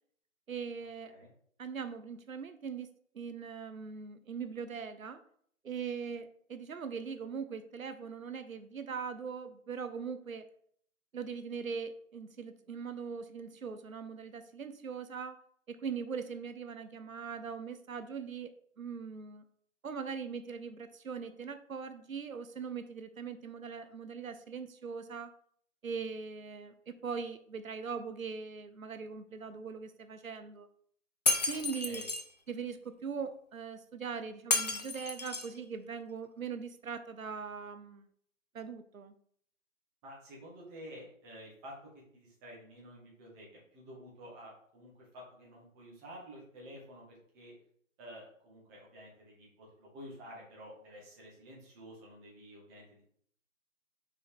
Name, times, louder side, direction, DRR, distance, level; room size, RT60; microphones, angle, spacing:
voice 1, 0.5-1.1 1.6-5.2 5.6-10.5 11.1-15.4 15.7-19.4 19.8-25.3 25.8-30.7 31.5-32.0 32.5-38.1 38.5-39.1, right 6 dB, 85° right, 10 dB, 0.8 m, -41 dB
Shatter, 31.3-32.2 34.5-35.6, left 3 dB, 35° left, 0.4 m, -31 dB
voice 2, 31.5-32.1 40.0-41.8 42.1-47.5 48.0-53.0, equal, 15° right, -4 dB, 1.8 m, -51 dB
5.9 x 4.7 x 3.7 m, 0.63 s
figure-of-eight pair, 150°, 40 cm